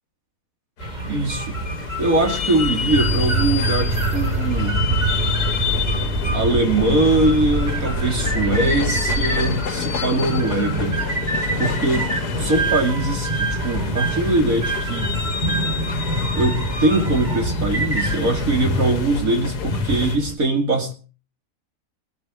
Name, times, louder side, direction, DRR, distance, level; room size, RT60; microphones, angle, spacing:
sound 1, 0.8-20.2, left 6 dB, 85° left, 1.7 m, -29 dB
sound 2, 0.8-20.3, right 1 dB, 25° right, 2.7 m, -27 dB
voice 1, 1.1-1.5 2.0-4.8 6.3-11.0 11.6-12.1 12.4-15.1 16.3-20.9, right 2 dB, 60° right, 5 dB, 3.1 m, -22 dB
sound 3, 2.9-9.3, right 2 dB, 45° right, 3.3 m, -24 dB
21.5 x 7.1 x 7.8 m, 0.36 s
omnidirectional pair, 1.7 m